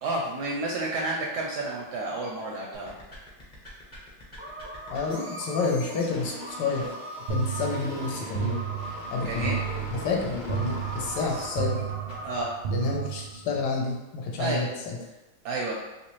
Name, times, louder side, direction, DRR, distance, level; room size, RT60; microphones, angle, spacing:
voice 1, 0.0-3.0 9.2-9.6 11.3-11.5 12.2-12.6 14.4-14.6 15.4-15.7, right 2 dB, 75° right, -2 dB, 1.0 m, -30 dB
sound 1, 2.7-12.4, left 1 dB, 30° left, 0.8 m, -44 dB
sound 2, 4.4-12.5, right 1 dB, 30° right, 0.5 m, -40 dB
voice 2, 4.9-6.9 7.3-8.6 9.1-9.5 9.9-11.8 12.7-15.0, left 4 dB, 70° left, -1 dB, 1.2 m, -29 dB
sound 3, 7.3-13.7, right 10 dB, 90° right, 1.4 m, -33 dB
3.2 x 3.0 x 3.0 m, 1.1 s
omnidirectional pair, 2.2 m